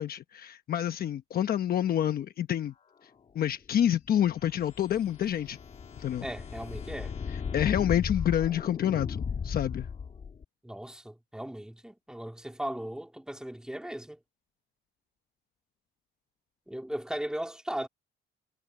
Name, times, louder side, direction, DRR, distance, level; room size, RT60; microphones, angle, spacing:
voice 1, 0.0-2.7 3.3-5.6 6.0-6.3 7.5-9.9, left 10 dB, 45° left, 1.0 m, -28 dB
sound 1, 4.1-10.4, left 6 dB, 30° left, 1.8 m, -36 dB
voice 2, 6.2-7.2 10.6-14.2 16.7-17.9, right 1 dB, 5° right, 2.6 m, -37 dB
cardioid pair, 155°, 21 cm